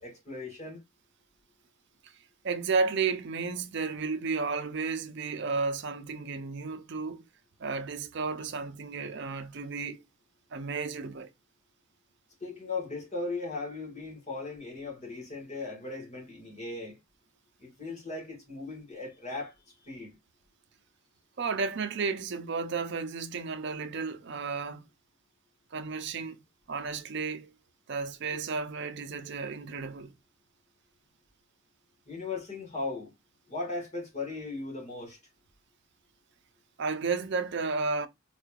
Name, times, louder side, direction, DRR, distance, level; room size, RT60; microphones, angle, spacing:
voice 1, 0.0-0.8 12.4-17.0 17.6-19.5 19.8-20.2 32.1-33.1 33.5-35.2, left 3 dB, 35° left, 1.6 m, -37 dB
voice 2, 2.4-7.2 7.6-10.0 10.5-11.3 21.4-24.9 25.7-26.4 26.7-27.5 27.9-30.1 36.8-38.1, right 4 dB, 55° right, 0.5 m, -32 dB
3.8 x 3.1 x 2.3 m
head